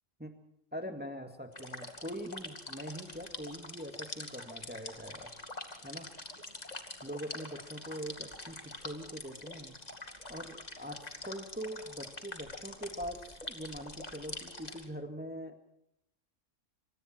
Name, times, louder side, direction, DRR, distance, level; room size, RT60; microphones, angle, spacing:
voice 1, 0.7-5.3 5.8-6.1 7.0-9.8 10.3-15.6, equal, 10° right, 6 dB, 2.0 m, -43 dB
sound 1, 1.5-14.9, left 2 dB, 30° left, 2.5 m, -45 dB
26.5 x 26.0 x 4.5 m, 0.72 s
omnidirectional pair, 1.3 m